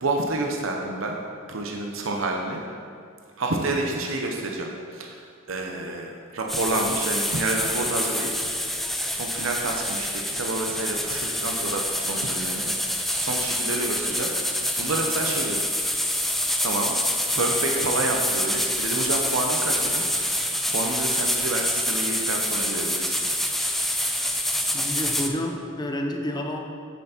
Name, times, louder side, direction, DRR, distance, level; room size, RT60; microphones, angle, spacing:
voice 1, 0.0-1.2 1.5-2.6 3.4-8.3 9.1-12.7 13.2-15.6 16.6-20.4 20.7-23.2, right 2 dB, 70° right, 1 dB, 0.8 m, -29 dB
sound 1, 6.5-25.3, left 1 dB, ahead, 0.4 m, -26 dB
voice 2, 24.7-26.6, left 1 dB, 20° left, 2 dB, 0.8 m, -29 dB
8.0 x 7.2 x 4.3 m, 2.3 s
head